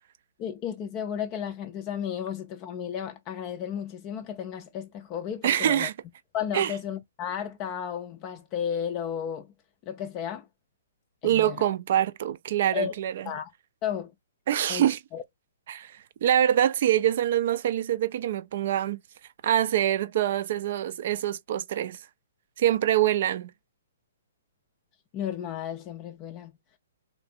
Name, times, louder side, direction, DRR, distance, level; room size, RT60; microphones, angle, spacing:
voice 1, 0.4-5.9 6.3-9.5 9.9-10.5 11.2-11.6 12.7-12.9 13.3-13.5 13.8-14.1 14.7-15.2 25.1-26.5, left 8 dB, 25° left, 0.4 m, -33 dB
voice 2, 5.4-5.9 6.5-6.7 11.2-13.1 14.5-15.0 15.7-15.9 16.2-19.0 19.4-22.0 22.6-23.5, right 11 dB, 45° right, 0.4 m, -25 dB
3.2 x 3.1 x 2.6 m
figure-of-eight pair, 120°, 0 cm